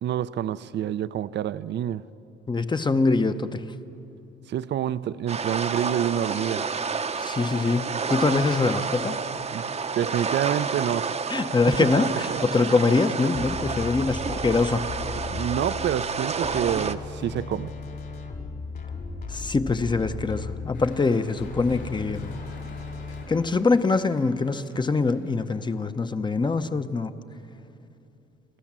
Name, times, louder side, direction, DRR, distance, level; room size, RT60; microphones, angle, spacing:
voice 1, 0.0-2.0 4.5-6.7 9.5-9.6 10.0-11.1 12.1-12.4 15.3-17.7, right 10 dB, 60° right, 0.6 m, -27 dB
voice 2, 2.5-3.6 7.2-9.2 11.3-14.8 19.3-22.3 23.3-27.1, left 3 dB, 25° left, 0.8 m, -24 dB
sound 1, 5.3-16.9, right 5 dB, 35° right, 0.8 m, -30 dB
sound 2, 13.3-23.2, left 4 dB, 50° left, 3.2 m, -36 dB
sound 3, 20.7-25.8, left 2 dB, 70° left, 6.3 m, -50 dB
28.0 x 13.0 x 7.5 m
cardioid pair, 90°, 20 cm